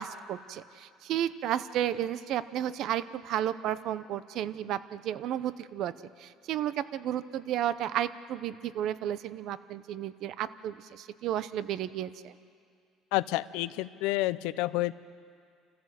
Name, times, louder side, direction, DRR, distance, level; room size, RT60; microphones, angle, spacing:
voice 1, 0.0-5.9 6.2-12.3, right 11 dB, 65° right, 15 dB, 0.7 m, -33 dB
voice 2, 13.1-14.9, left 18 dB, 85° left, 16 dB, 0.6 m, -29 dB
28.5 x 15.0 x 7.6 m, 2.3 s
cardioid pair, 110°, 0 cm